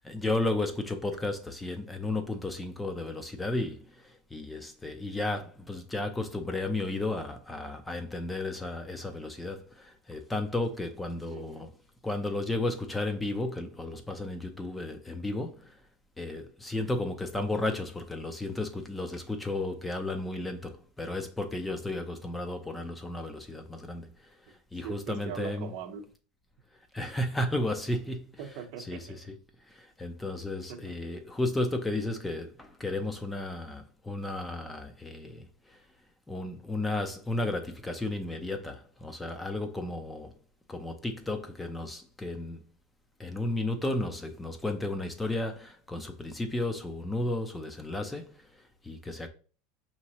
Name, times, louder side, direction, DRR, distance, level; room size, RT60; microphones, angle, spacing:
voice 1, 0.0-11.7 12.0-15.8 16.2-25.7 26.9-28.4 28.9-29.0 29.6-35.8 36.3-40.3 40.7-42.6 43.2-49.3, left 2 dB, 10° left, 0.4 m, -33 dB
voice 2, 11.2-11.6 24.5-24.6 24.8-26.1 27.0-27.1 28.4-29.3 30.7-31.0, right 8 dB, 55° right, 0.7 m, -42 dB
5.3 x 2.9 x 2.8 m
supercardioid pair, 155°, 0 cm